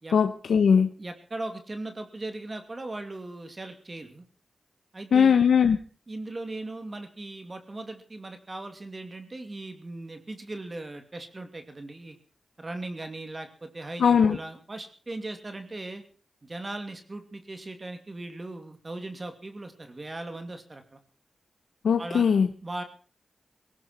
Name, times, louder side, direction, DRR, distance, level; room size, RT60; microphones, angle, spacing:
voice 1, 0.1-0.9 5.1-5.8 14.0-14.4 21.8-22.5, left 7 dB, 90° left, 8 dB, 1.0 m, -20 dB
voice 2, 1.0-4.3 4.9-5.4 6.1-12.2 12.6-16.0 16.4-21.0 22.0-22.3 22.6-22.8, right 2 dB, 40° right, 7 dB, 2.6 m, -38 dB
17.5 x 17.5 x 4.4 m, 0.39 s
cardioid pair, 50°, 0 cm